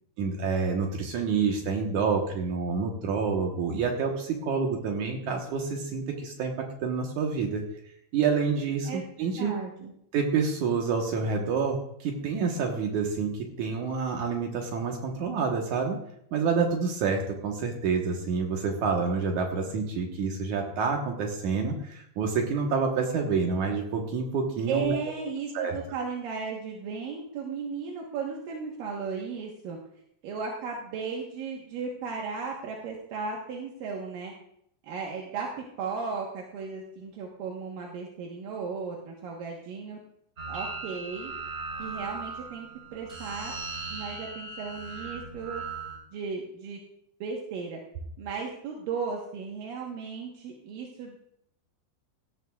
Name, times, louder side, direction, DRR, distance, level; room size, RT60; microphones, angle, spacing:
voice 1, 0.2-6.5 6.8-7.6 8.1-9.5 10.1-16.0 16.3-25.0 25.5-25.8, right 5 dB, 85° right, 1 dB, 1.7 m, -28 dB
voice 2, 9.4-9.9 24.7-29.8 30.2-34.3 34.8-35.5 35.8-40.0 40.5-41.3 41.8-43.5 43.9-45.6 46.1-46.8 47.2-47.8 48.2-51.2, right 5 dB, 65° right, -1 dB, 2.3 m, -35 dB
sound 1, 40.4-46.0, right 3 dB, 15° right, 2.7 m, -38 dB
17.5 x 13.0 x 2.3 m, 0.73 s
omnidirectional pair, 5.3 m